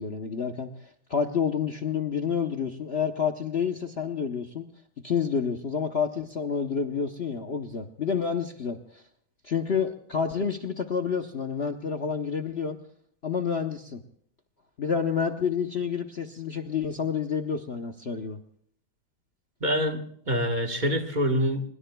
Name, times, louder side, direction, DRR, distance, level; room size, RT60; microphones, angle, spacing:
voice 1, 0.0-4.7 5.0-9.0 9.4-12.8 13.2-14.0 14.8-18.4, left 6 dB, 55° left, 5 dB, 0.7 m, -29 dB
voice 2, 19.6-21.6, equal, 30° right, 4 dB, 1.1 m, -26 dB
25.0 x 21.5 x 2.3 m, 0.65 s
omnidirectional pair, 2.2 m